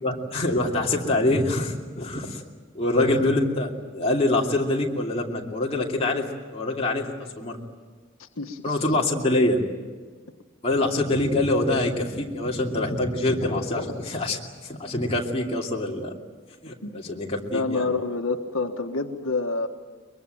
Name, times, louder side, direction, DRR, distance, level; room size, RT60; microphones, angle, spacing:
voice 1, 0.0-2.4 2.7-6.3 6.5-7.6 8.6-9.6 10.6-16.1 16.6-17.9, left 2 dB, 30° left, -1 dB, 2.7 m, -25 dB
voice 2, 8.2-8.9 13.5-13.6 16.8-17.0 17.5-19.7, left 3 dB, 85° left, 5 dB, 1.5 m, -28 dB
23.5 x 22.5 x 9.1 m, 1.4 s
head